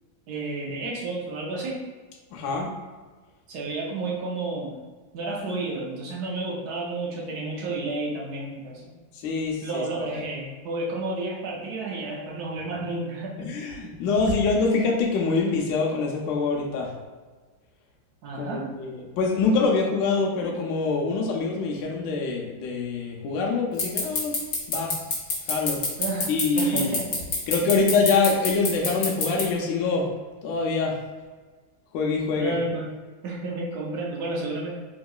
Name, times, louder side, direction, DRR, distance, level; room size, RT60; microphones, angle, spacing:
voice 1, 0.3-1.8 3.5-4.8 5.1-9.0 9.6-13.5 18.2-18.7 26.0-27.1 32.4-32.9 33.2-34.7, right 2 dB, 70° right, -3 dB, 1.0 m, -31 dB
voice 2, 2.3-2.7 9.1-9.8 10.1-10.2 13.4-16.9 18.3-24.4 24.7-24.9 25.5-25.8 26.3-26.9 27.5-30.1 30.4-31.0 31.9-32.5, left 4 dB, 75° left, -1 dB, 1.2 m, -25 dB
sound 1, 23.8-29.4, left 4 dB, 60° left, 1.1 m, -25 dB
3.6 x 3.0 x 2.3 m, 1.4 s
omnidirectional pair, 2.1 m